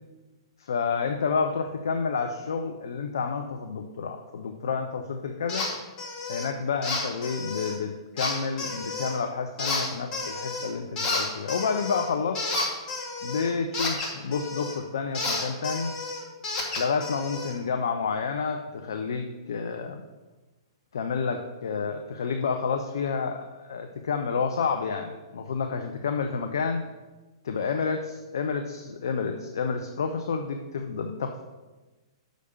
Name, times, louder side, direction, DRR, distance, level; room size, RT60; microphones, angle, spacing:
voice 1, 0.6-5.7 6.3-12.5 13.2-15.9 16.8-20.0 20.9-26.8 27.4-28.0 28.3-31.4, left 5 dB, 70° left, 5 dB, 0.6 m, -29 dB
sound 1, 5.5-5.7 6.0-6.5 6.8-7.7 8.2-9.2 9.6-10.7 11.0-14.8 15.1-17.5, left 3 dB, 35° left, 2.2 m, -31 dB
6.5 x 5.1 x 6.7 m, 1.2 s
hypercardioid pair, 110°, 2 cm